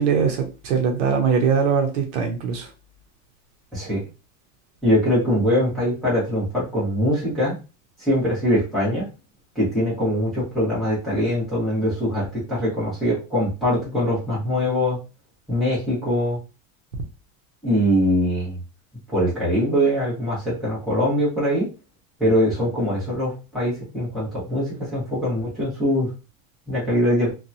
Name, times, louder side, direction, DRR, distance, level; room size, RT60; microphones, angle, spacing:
voice 1, 0.0-2.7, right 6 dB, 60° right, 3 dB, 0.8 m, -21 dB
voice 2, 3.7-4.0 4.8-7.5 8.0-9.1 9.5-15.0 15.5-16.4 17.6-18.6 19.1-21.7 22.2-26.1 26.7-27.3, equal, ahead, -9 dB, 1.1 m, -22 dB
2.8 x 2.3 x 2.6 m, 0.31 s
supercardioid pair, 175°, 41 cm